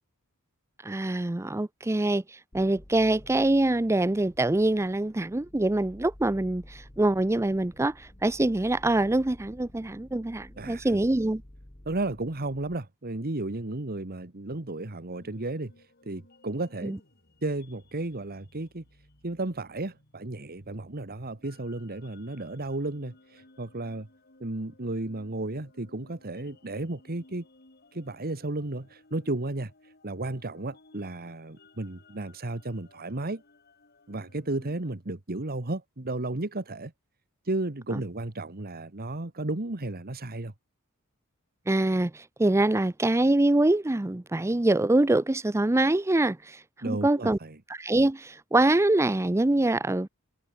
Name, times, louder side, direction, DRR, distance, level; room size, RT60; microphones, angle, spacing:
voice 1, 0.8-2.2 2.5-11.4 16.8-17.0 37.9-38.0 41.7-46.6 46.8-47.4 47.7-50.1, right 2 dB, 15° right, 0.5 m, -24 dB
sound 1, 2.5-12.8, left 1 dB, 25° left, 1.8 m, -51 dB
voice 2, 10.6-11.0 11.9-15.7 16.1-16.9 17.4-18.8 19.2-24.1 24.4-27.5 27.9-29.7 30.0-33.4 34.1-36.9 37.5-40.5 46.8-47.6, right 2 dB, 45° right, 1.6 m, -33 dB
sound 2, 15.1-34.9, left 2 dB, 45° left, 6.8 m, -59 dB
head